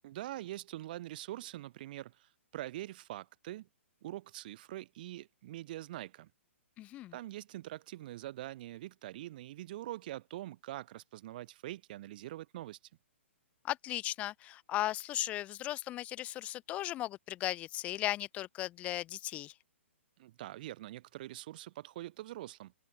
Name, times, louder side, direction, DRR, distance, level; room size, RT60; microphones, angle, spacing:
voice 1, 0.0-3.7 4.0-6.3 7.1-12.8 20.2-22.7, right 15 dB, 40° right, 2.0 m, -44 dB
voice 2, 6.8-7.1 13.6-19.5, left 14 dB, 20° left, 0.4 m, -36 dB
open air
figure-of-eight pair, 120°, 7 cm